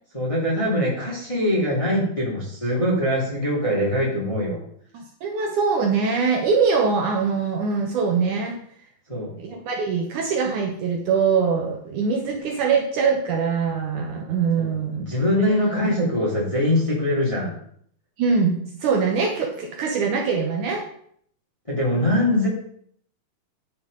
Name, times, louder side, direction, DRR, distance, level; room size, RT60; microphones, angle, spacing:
voice 1, 0.1-4.6 9.1-9.3 14.6-17.5 21.7-22.5, left 1 dB, 10° left, -4 dB, 2.0 m, -23 dB
voice 2, 4.9-8.6 9.4-15.1 15.5-15.8 18.2-20.9, right 5 dB, 65° right, 2 dB, 2.2 m, -23 dB
10.0 x 5.4 x 5.3 m, 0.64 s
omnidirectional pair, 4.2 m